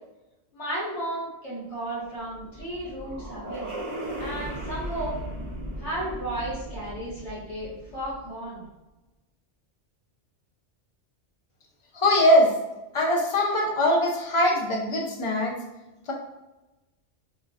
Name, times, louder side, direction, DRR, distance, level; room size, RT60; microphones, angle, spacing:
voice 1, 0.5-3.7 4.2-5.2 5.8-8.6, right 1 dB, 75° left, -8 dB, 1.7 m, -34 dB
sound 1, 2.0-8.4, right 1 dB, 25° left, 0.9 m, -37 dB
voice 2, 11.9-12.5 12.9-15.6, left 1 dB, 45° left, -1 dB, 0.4 m, -21 dB
3.6 x 2.4 x 2.7 m, 1.0 s
omnidirectional pair, 1.2 m